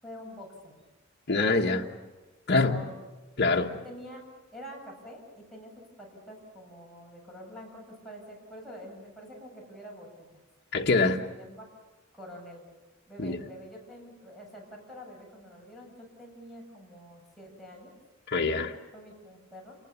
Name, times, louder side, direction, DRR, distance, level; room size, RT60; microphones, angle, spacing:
voice 1, 0.0-0.7 1.4-2.0 2.6-3.0 3.8-4.2 4.5-10.1 11.3-11.7 12.1-12.7 13.1-17.9 18.9-19.8, equal, ahead, 7.9 m, -46 dB
voice 2, 1.3-1.8 2.5-2.8 3.4-3.7 10.7-11.2 13.2-13.4 18.3-18.7, left 3 dB, 55° left, 1.3 m, -24 dB
29.0 x 20.5 x 7.1 m
head